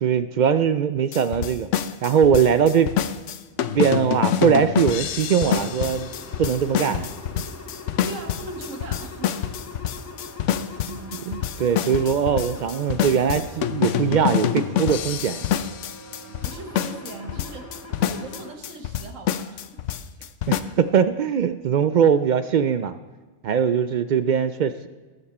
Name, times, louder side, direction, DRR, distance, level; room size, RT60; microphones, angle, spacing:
voice 1, 0.0-1.7 2.0-2.9 3.7-6.1 6.4-7.1 10.9-15.5 20.5-22.9 23.4-24.9, right 7 dB, 65° right, 12 dB, 0.4 m, -21 dB
sound 1, 1.1-20.6, left 10 dB, 75° left, 0.9 m, -26 dB
sound 2, 5.3-18.6, left 2 dB, 15° left, 0.8 m, -42 dB
voice 2, 8.0-9.4 16.2-17.7 18.0-19.8, right 3 dB, 85° right, 5 dB, 1.7 m, -39 dB
18.5 x 7.0 x 4.2 m, 1.4 s
omnidirectional pair, 1.3 m